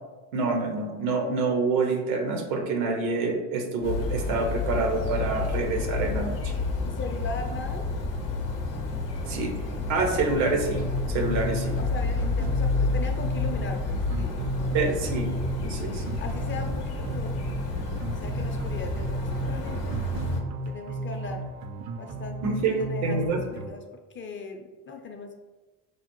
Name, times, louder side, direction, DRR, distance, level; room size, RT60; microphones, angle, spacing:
voice 1, 0.3-6.5 9.3-9.5 9.9-10.8 11.1-11.8 14.7-15.3 15.6-16.0 22.4-23.4, right 3 dB, 80° right, 3 dB, 0.8 m, -27 dB
sound 1, 3.8-20.4, left 3 dB, 85° left, 0.6 m, -30 dB
voice 2, 6.8-7.9 11.7-15.1 16.2-17.4 18.2-20.3 20.6-21.4 22.0-23.8 24.1-25.3, left 4 dB, 30° left, 4 dB, 0.4 m, -39 dB
sound 2, 10.7-23.7, right 2 dB, 45° right, 0.4 m, -34 dB
4.9 x 2.0 x 2.9 m, 1.2 s
hypercardioid pair, 60°, 43 cm